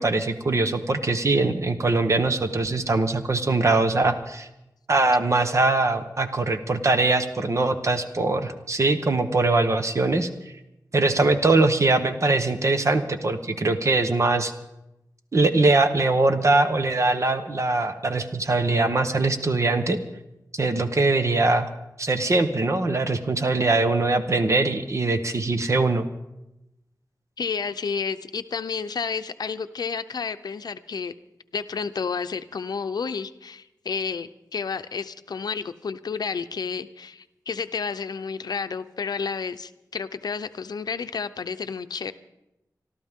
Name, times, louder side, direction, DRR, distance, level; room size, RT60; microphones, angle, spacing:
voice 1, 0.0-4.5 4.9-10.3 10.9-14.5 15.3-20.0 20.5-21.7 22.0-26.0, right 3 dB, 45° right, 8 dB, 1.1 m, -22 dB
voice 2, 27.4-31.1 31.5-42.1, left 5 dB, 75° left, 11 dB, 0.6 m, -31 dB
25.5 x 13.0 x 3.7 m, 0.92 s
wide cardioid pair, 105°, 7 cm